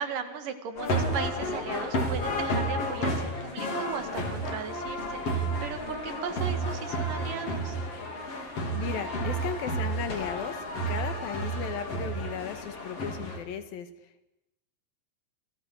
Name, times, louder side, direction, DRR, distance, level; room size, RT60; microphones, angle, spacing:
voice 1, 0.0-7.8, right 6 dB, 65° right, 9 dB, 3.5 m, -37 dB
sound 1, 0.8-13.4, right 1 dB, 40° left, 4.5 m, -31 dB
voice 2, 8.2-10.6 10.9-13.9, left 8 dB, 75° left, 10 dB, 3.5 m, -36 dB
28.5 x 27.0 x 6.5 m, 0.90 s
omnidirectional pair, 4.2 m